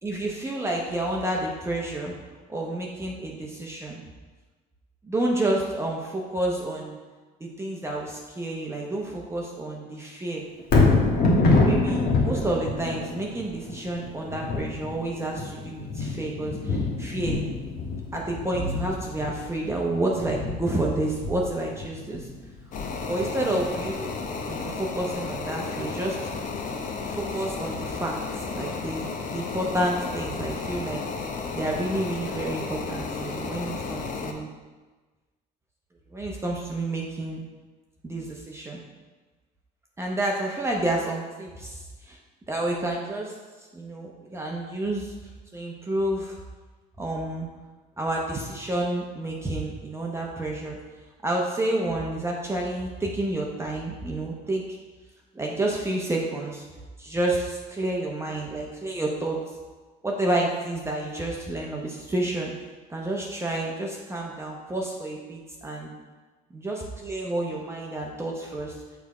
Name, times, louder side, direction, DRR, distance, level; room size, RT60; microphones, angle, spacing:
voice 1, 0.0-2.1 2.5-4.0 5.0-7.0 7.4-10.4 11.4-17.4 18.1-22.3 23.0-24.1 24.5-26.2 27.1-31.0 31.5-34.5 36.1-37.4 38.0-38.8 40.0-42.2 42.5-43.3 43.7-45.1 45.5-46.4 47.0-47.5 48.0-50.8 51.2-54.8 55.3-56.6 57.0-59.4 60.0-62.5 62.9-65.9 66.5-68.8, right 1 dB, 15° right, -1 dB, 0.8 m, -29 dB
Thunder, 10.6-24.8 25.3-25.4, left 3 dB, 65° left, 1.2 m, -26 dB
sound 1, 22.7-34.3, left 4 dB, 50° left, 0.7 m, -33 dB
6.3 x 3.5 x 4.8 m, 1.3 s
cardioid pair, 110°, 17 cm